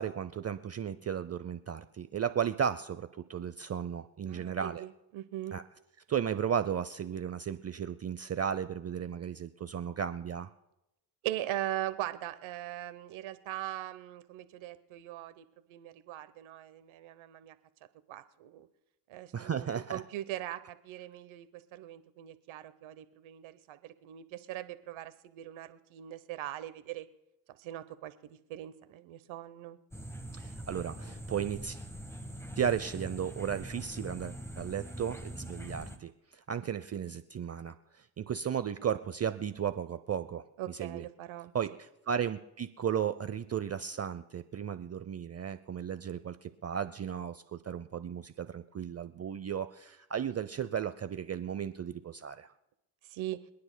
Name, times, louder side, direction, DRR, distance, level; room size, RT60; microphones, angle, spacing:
voice 1, 0.0-4.9 5.5-5.6 6.1-10.5 19.3-20.0 30.3-31.8 32.6-40.4 40.8-41.0 41.5-52.5, right 8 dB, 30° right, 12 dB, 0.6 m, -35 dB
voice 2, 4.3-5.6 11.2-15.4 15.7-17.6 18.1-18.7 19.1-27.1 27.5-29.8 40.6-41.5 53.0-53.4, right 13 dB, 70° right, 13 dB, 1.0 m, -40 dB
sound 1, 29.9-36.0, equal, 5° left, 1.4 m, -43 dB
27.5 x 9.7 x 2.2 m, 0.88 s
supercardioid pair, 60°, 50 cm